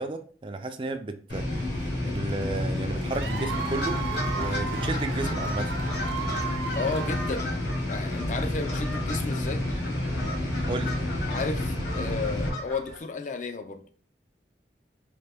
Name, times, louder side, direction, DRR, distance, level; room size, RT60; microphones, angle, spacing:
voice 1, 0.0-4.0 4.4-5.7 10.7-10.9, right 2 dB, 30° right, 0.4 m, -33 dB
sound 1, 1.3-12.5, left 1 dB, 85° left, 1.8 m, -30 dB
Cheering / Applause / Crowd, 3.1-7.8, right 6 dB, 75° right, 0.8 m, -36 dB
sound 2, 3.5-13.0, left 2 dB, 65° left, 1.3 m, -38 dB
voice 2, 6.8-7.5 7.9-9.7 11.3-13.8, left 3 dB, 45° left, 0.4 m, -33 dB
4.4 x 2.9 x 3.4 m
head